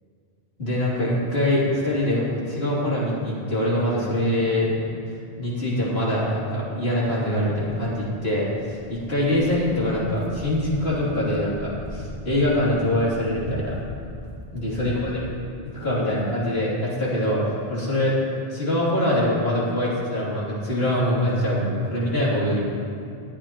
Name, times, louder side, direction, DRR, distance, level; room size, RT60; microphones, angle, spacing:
voice 1, 0.6-4.8 5.1-13.8 14.5-15.3 15.7-18.2 18.5-22.6, left 1 dB, 80° left, -7 dB, 3.1 m, -24 dB
Walk footsteps, 7.6-15.3, left 1 dB, 25° left, 1.0 m, -40 dB
20.0 x 8.7 x 3.0 m, 2.5 s
omnidirectional pair, 1.0 m